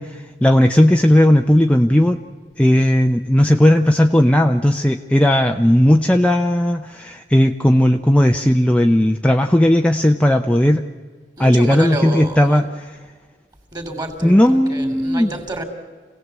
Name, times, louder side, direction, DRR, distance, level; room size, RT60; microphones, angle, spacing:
voice 1, 0.0-2.2 2.6-10.8 11.4-12.6 14.2-15.3, left 1 dB, 5° left, 4 dB, 0.7 m, -15 dB
voice 2, 11.4-12.7 13.7-15.6, right 1 dB, 25° right, 7 dB, 3.2 m, -29 dB
27.0 x 17.5 x 8.2 m, 1.5 s
head